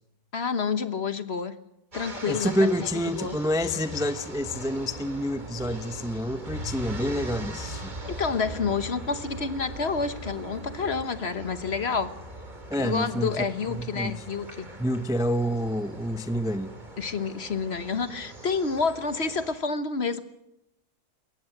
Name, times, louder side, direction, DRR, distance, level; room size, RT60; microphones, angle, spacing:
voice 1, 0.3-1.6 1.9-2.9 3.1-3.4 8.1-12.1 12.8-14.7 17.0-20.2, left 5 dB, 45° left, 12 dB, 1.4 m, -29 dB
sound 1, 1.9-19.5, equal, 30° right, 3.1 m, -41 dB
voice 2, 2.3-7.9 12.7-13.3 13.7-14.1 14.8-16.8, equal, 5° right, 11 dB, 0.7 m, -28 dB
sound 2, 4.3-11.0, right 3 dB, 85° right, 1.7 m, -44 dB
22.0 x 18.0 x 7.8 m, 0.86 s
omnidirectional pair, 1.6 m